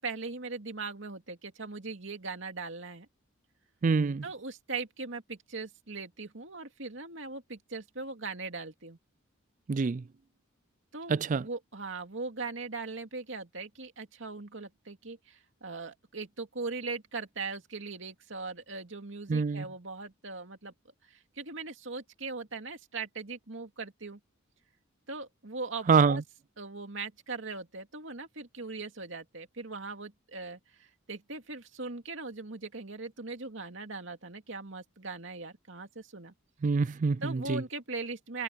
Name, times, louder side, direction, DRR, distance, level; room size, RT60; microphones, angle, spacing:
voice 1, 0.0-3.1 4.2-9.0 10.9-20.7 21.1-24.2 25.1-26.2 26.6-36.3 37.2-38.4, right 3 dB, 65° right, 2.6 m, -40 dB
voice 2, 3.8-4.2 9.7-10.0 11.1-11.4 19.3-19.7 25.9-26.2 36.6-37.6, right 5 dB, 40° right, 0.3 m, -26 dB
head